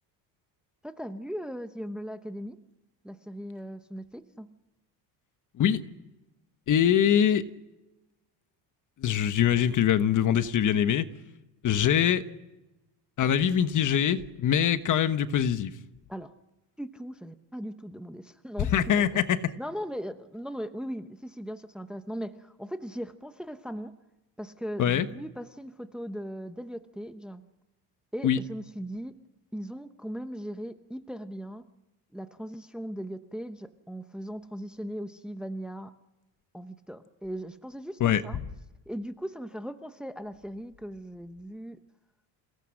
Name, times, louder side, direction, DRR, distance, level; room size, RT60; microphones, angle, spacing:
voice 1, 0.8-2.6 3.0-4.5 16.1-16.3 16.8-19.0 19.6-23.9 24.4-27.4 28.1-29.1 29.5-31.7 32.1-35.9 36.5-38.4 38.9-41.8, equal, ahead, 9 dB, 0.8 m, -38 dB
voice 2, 6.7-7.4 9.0-11.1 11.6-12.2 13.2-15.7 18.7-19.4 24.8-25.1 28.2-28.4 38.0-38.2, left 9 dB, 45° left, 11 dB, 1.3 m, -23 dB
28.0 x 18.0 x 6.4 m, 1.0 s
cardioid pair, 130°, 43 cm